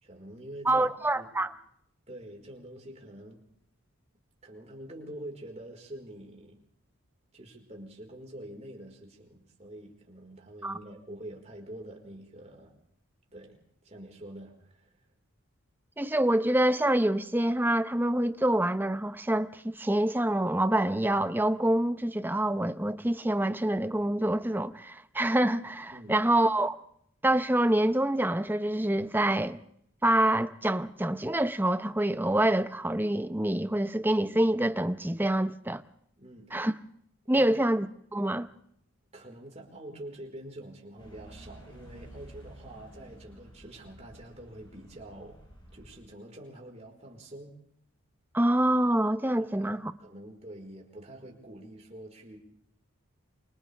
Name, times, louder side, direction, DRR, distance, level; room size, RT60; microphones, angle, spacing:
voice 1, 0.0-0.9 1.1-1.4 2.1-3.4 4.4-6.6 7.3-12.7 13.3-15.0 25.9-26.2 36.2-36.6 37.3-37.5 39.1-45.4 45.7-47.6 49.4-52.4, right 1 dB, 30° right, 4.6 m, -46 dB
voice 2, 0.6-1.5 10.6-10.8 16.0-26.8 27.2-29.6 30.0-35.8 36.5-36.7 37.3-38.5 48.3-49.9, right 1 dB, 10° right, 0.7 m, -26 dB
sound 1, 41.0-46.0, right 1 dB, 25° left, 7.2 m, -51 dB
28.5 x 27.0 x 3.4 m
head